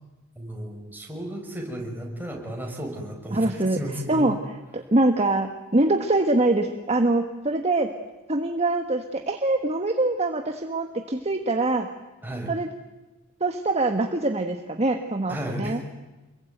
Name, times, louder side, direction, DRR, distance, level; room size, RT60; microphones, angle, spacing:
voice 1, 0.4-4.3 12.2-12.5 15.3-15.9, equal, 10° right, 0 dB, 5.7 m, -34 dB
voice 2, 3.3-3.8 4.1-4.4 4.7-7.9 8.3-11.9 12.5-12.7 13.4-15.8, right 2 dB, 30° right, 5 dB, 1.5 m, -24 dB
27.5 x 22.5 x 9.3 m, 1.1 s
head